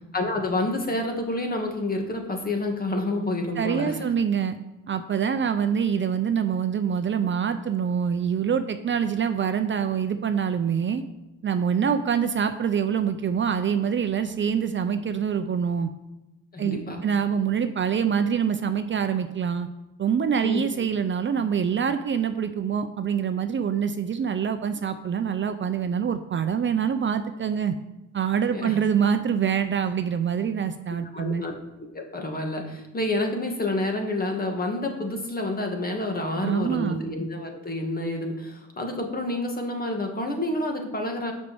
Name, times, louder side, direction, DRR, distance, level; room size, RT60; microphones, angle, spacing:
voice 1, 0.1-4.1 16.5-17.0 20.4-20.6 28.5-28.8 31.1-31.5 31.9-41.3, left 2 dB, 30° left, 3 dB, 1.8 m, -28 dB
voice 2, 3.6-4.6 4.9-11.0 11.4-15.9 16.6-19.7 20.0-27.8 28.1-31.4 36.4-37.0, right 7 dB, 40° right, 9 dB, 0.6 m, -25 dB
6.6 x 5.4 x 7.0 m, 1.0 s
cardioid pair, 90°, 30 cm